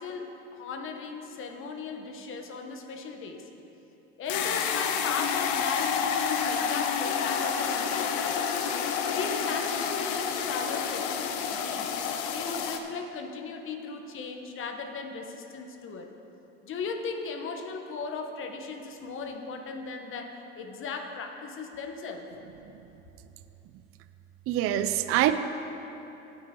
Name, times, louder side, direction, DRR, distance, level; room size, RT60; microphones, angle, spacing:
voice 1, 0.0-3.4 4.2-8.4 9.1-11.9 12.3-16.1 16.6-22.3, left 4 dB, 40° left, 4 dB, 1.2 m, -37 dB
sound 1, 4.3-12.8, left 7 dB, 70° left, 0.8 m, -29 dB
voice 2, 24.5-25.3, right 13 dB, 45° right, 10 dB, 0.5 m, -24 dB
17.5 x 5.9 x 3.8 m, 3.0 s
supercardioid pair, 105°, 31 cm